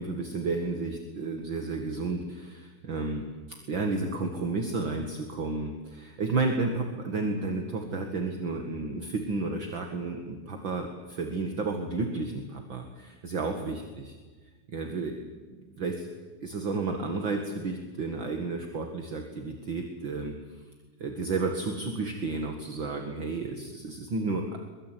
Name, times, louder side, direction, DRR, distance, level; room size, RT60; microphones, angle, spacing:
voice 1, 0.0-3.2 3.7-14.2 14.7-15.3 15.8-16.1 16.4-20.6 21.0-24.7, right 3 dB, 40° right, 4 dB, 2.0 m, -32 dB
23.0 x 22.5 x 9.4 m, 1.4 s
omnidirectional pair, 4.5 m